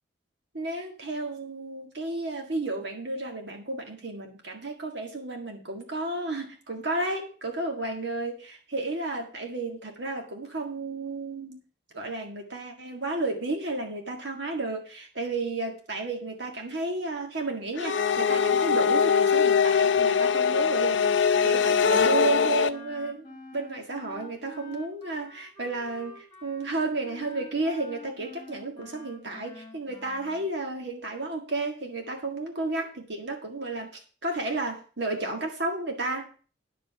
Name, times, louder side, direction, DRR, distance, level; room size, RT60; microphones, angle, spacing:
voice 1, 0.5-11.6 11.9-33.9 34.2-36.3, right 2 dB, 60° right, 2 dB, 1.7 m, -32 dB
sound 1, 17.8-22.7, left 6 dB, 70° left, 0.6 m, -22 dB
Wind instrument woodwind instrument, 21.5-30.5, left 2 dB, 25° left, 1.6 m, -47 dB
10.0 x 5.3 x 6.7 m, 0.39 s
head